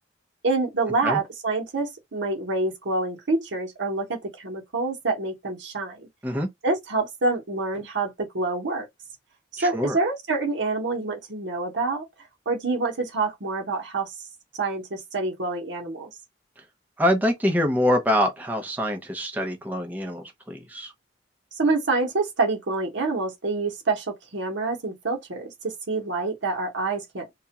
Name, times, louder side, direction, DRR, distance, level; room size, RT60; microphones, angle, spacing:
voice 1, 0.4-6.1 6.6-8.8 9.5-12.0 12.5-14.2 14.6-16.1 21.6-24.1 24.3-27.3, right 3 dB, 70° right, 0.8 m, -27 dB
voice 2, 9.6-10.0 17.0-20.9, equal, 10° right, 0.6 m, -25 dB
2.3 x 2.1 x 2.8 m
head